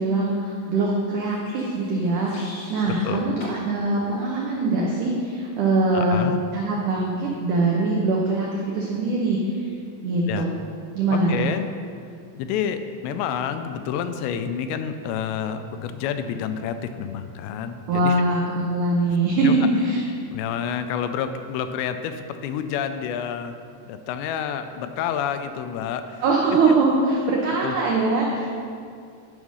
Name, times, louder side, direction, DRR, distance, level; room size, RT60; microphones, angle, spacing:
voice 1, 0.0-2.3 2.7-6.2 6.5-9.7 10.0-10.5 11.0-11.5 17.9-20.0 26.2-28.5, right 2 dB, 85° right, -2 dB, 1.8 m, -22 dB
sound 1, 1.2-3.1 3.4-3.6 4.1-4.3, left 1 dB, 60° left, 1.5 m, -44 dB
voice 2, 2.9-3.3 5.9-6.4 10.3-10.5 11.3-11.7 12.3-18.2 19.4-19.6 20.3-23.6 23.9-26.2 27.6-27.8, left 8 dB, 85° left, 9 dB, 2.7 m, -29 dB
11.0 x 5.5 x 6.3 m, 2.3 s
omnidirectional pair, 5.1 m